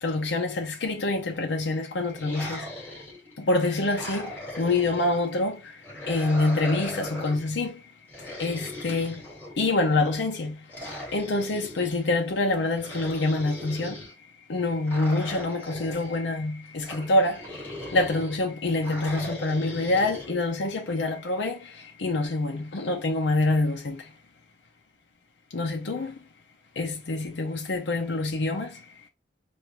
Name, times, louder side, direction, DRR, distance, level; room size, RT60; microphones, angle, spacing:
voice 1, 0.0-2.9 3.4-7.8 8.4-9.2 9.6-10.7 11.1-14.1 14.5-24.1 25.5-26.2 26.8-28.8, left 2 dB, 85° left, 0.6 m, -26 dB
sound 1, 2.1-3.3 3.8-5.2 5.8-7.4 8.1-9.8 10.7-12.0 12.7-14.1 14.8-16.2 16.8-18.4 18.8-20.3, left 1 dB, 10° left, 2.5 m, -38 dB
4.7 x 2.5 x 2.8 m
head